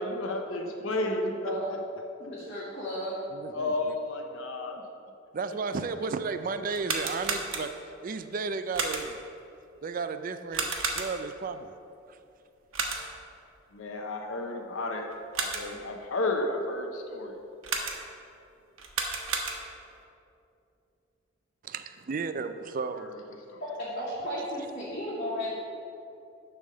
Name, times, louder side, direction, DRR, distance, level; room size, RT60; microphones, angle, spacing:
voice 1, 0.0-1.3 1.7-1.8 3.5-4.8 13.7-17.4 23.0-23.2 23.5-23.6, left 2 dB, 90° left, 3 dB, 0.8 m, -32 dB
voice 2, 0.8-1.2 1.4-1.7 2.2-3.2 23.8-25.5, equal, 40° left, -10 dB, 1.8 m, -34 dB
voice 3, 3.3-3.9 5.3-7.7 8.0-9.2 9.8-11.7 12.1-12.2 21.6-23.1, right 4 dB, 45° right, 9 dB, 0.4 m, -33 dB
sound 1, 6.7-8.0 8.7-9.3 10.5-11.4 12.7-13.3 15.1-15.9 17.6-18.3 18.8-19.9, right 4 dB, 90° right, 1.0 m, -33 dB
10.5 x 3.5 x 6.4 m, 2.6 s
head